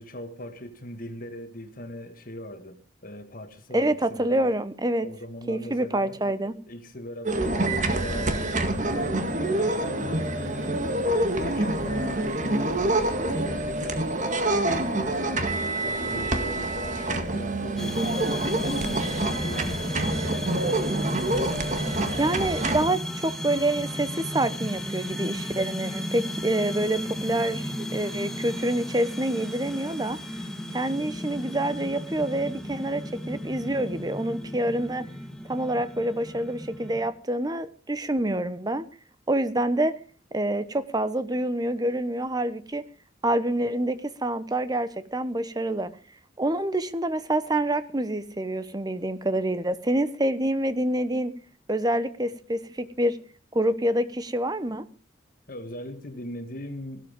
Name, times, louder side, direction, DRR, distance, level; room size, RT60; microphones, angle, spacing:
voice 1, 0.0-4.5 5.0-6.2 6.7-11.0 11.4-14.1 14.7-15.6 15.8-20.7 55.5-57.1, left 1 dB, 50° left, 2.0 m, -39 dB
voice 2, 3.7-5.1 5.5-6.6 22.2-30.2 30.7-35.1 35.5-38.8 39.3-39.9 40.3-42.8 43.2-45.9 46.4-51.3 51.7-53.2 53.5-54.8, right 1 dB, 20° right, 1.0 m, -27 dB
sound 1, 7.2-22.8, right 1 dB, 45° right, 1.8 m, -27 dB
sound 2, 17.8-37.1, equal, 5° left, 1.7 m, -34 dB
16.0 x 12.5 x 5.3 m
head